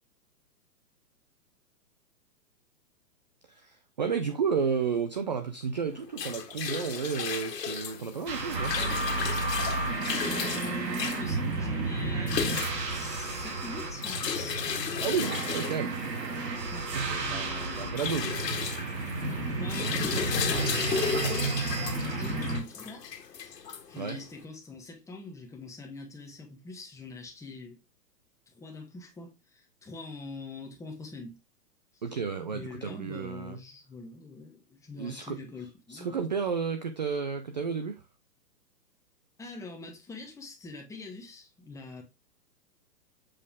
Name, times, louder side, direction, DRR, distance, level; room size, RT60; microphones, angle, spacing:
voice 1, 3.5-8.8 15.0-16.0 16.9-18.4 24.0-24.2 32.0-33.6 35.0-35.4 35.9-38.0, right 6 dB, 30° right, 0.3 m, -32 dB
sound 1, 5.9-24.4, left 6 dB, 80° left, 1.7 m, -34 dB
sound 2, 8.3-22.6, right 3 dB, 80° right, 2.4 m, -32 dB
voice 2, 10.2-12.5 12.8-14.6 16.7-18.7 19.2-20.9 21.7-23.1 23.4-23.6 23.9-27.8 28.5-31.4 31.9-32.0 32.5-36.2 39.4-42.0, left 2 dB, 5° left, 1.3 m, -43 dB
7.5 x 4.2 x 3.5 m
hypercardioid pair, 140°, 48 cm